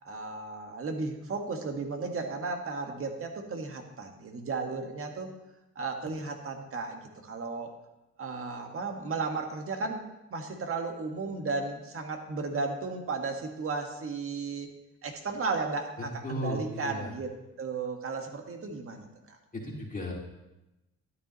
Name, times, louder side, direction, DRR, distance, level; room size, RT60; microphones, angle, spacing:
voice 1, 0.0-5.3 5.7-7.7 8.2-10.0 10.3-14.7 15.0-17.3 17.6-19.4, right 4 dB, 45° right, 4 dB, 1.6 m, -34 dB
voice 2, 16.0-17.1 19.5-20.1, left 1 dB, 25° left, -3 dB, 2.3 m, -35 dB
12.0 x 9.5 x 3.1 m, 0.96 s
cardioid pair, 90°, 30 cm